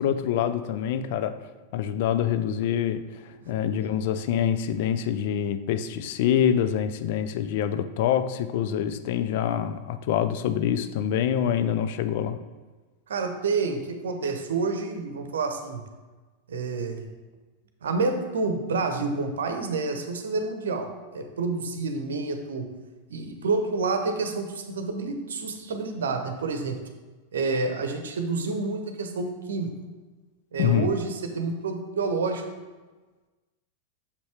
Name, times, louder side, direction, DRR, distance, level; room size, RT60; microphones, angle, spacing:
voice 1, 0.0-1.3 1.7-12.4 30.6-30.9, left 9 dB, 50° left, 10 dB, 0.4 m, -26 dB
voice 2, 13.1-15.8 16.5-17.1 17.8-22.7 23.1-26.8 27.3-29.7 30.5-32.4, right 3 dB, 65° right, 6 dB, 0.8 m, -29 dB
6.7 x 5.2 x 3.4 m, 1.3 s
figure-of-eight pair, 90°, 0 cm